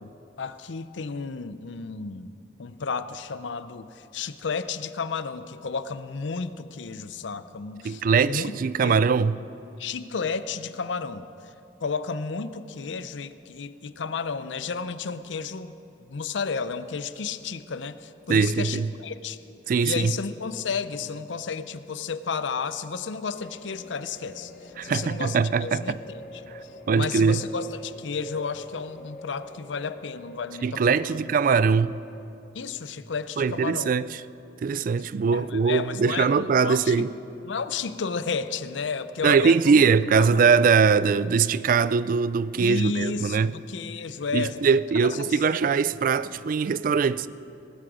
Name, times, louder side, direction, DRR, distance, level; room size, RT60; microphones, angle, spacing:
voice 1, 0.0-2.3 2.6-8.5 8.8-9.0 9.8-11.5 11.8-15.7 16.0-19.4 19.8-31.2 32.5-33.9 35.3-37.1 37.4-39.8 40.1-40.4 42.6-44.6 45.0-45.4, left 5 dB, 80° left, 0.6 m, -32 dB
voice 2, 7.8-9.4 18.3-18.9 19.7-20.1 24.8-26.0 26.5-26.6 26.9-27.4 30.6-32.0 33.4-34.1 34.6-37.1 39.2-43.5 44.3-47.3, right 5 dB, 50° right, 0.3 m, -22 dB
sound 1, 23.3-32.2, left 1 dB, 55° left, 2.5 m, -46 dB
18.5 x 12.5 x 5.1 m
head